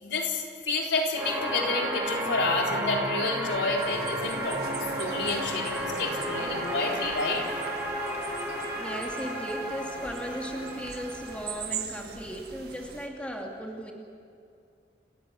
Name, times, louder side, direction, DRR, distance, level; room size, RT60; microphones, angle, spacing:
voice 1, 0.0-7.4, left 3 dB, 85° left, 0 dB, 4.0 m, -29 dB
sound 1, 1.1-11.4, equal, 10° right, 6.1 m, -32 dB
sound 2, 3.8-13.1, right 7 dB, 65° right, 2.1 m, -43 dB
voice 2, 8.7-13.9, equal, 5° left, 0 dB, 2.6 m, -36 dB
29.0 x 15.0 x 9.5 m, 2.4 s
head